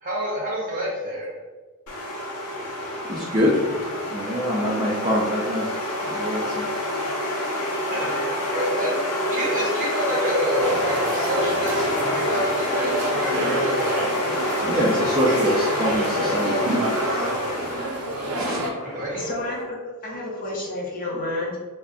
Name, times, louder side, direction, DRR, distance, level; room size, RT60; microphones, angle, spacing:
voice 1, 0.0-1.3 7.9-14.1 15.5-15.6 18.8-19.2, equal, 35° right, -4 dB, 0.8 m, -28 dB
sound 1, 1.9-19.6, left 1 dB, 85° left, 0.7 m, -27 dB
voice 2, 3.1-3.7 4.1-5.7 6.1-6.7 14.6-16.9 18.3-18.9, equal, 20° right, -7 dB, 0.4 m, -24 dB
sound 2, 10.6-18.7, right 1 dB, 80° right, 0.5 m, -28 dB
voice 3, 18.9-19.8 20.0-21.6, left 2 dB, 40° left, -5 dB, 0.7 m, -30 dB
2.5 x 2.1 x 3.5 m, 1.4 s
head